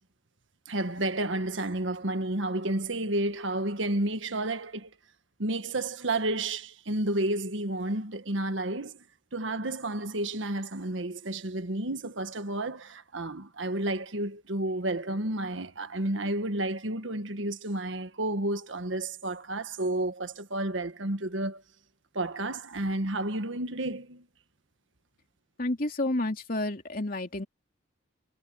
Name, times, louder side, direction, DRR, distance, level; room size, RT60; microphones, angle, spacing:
voice 1, 0.7-4.9 5.4-9.0 9.3-21.6 22.1-24.2, right 1 dB, 85° right, 1.5 m, -31 dB
voice 2, 25.6-27.4, left 2 dB, 50° left, 3.0 m, -30 dB
head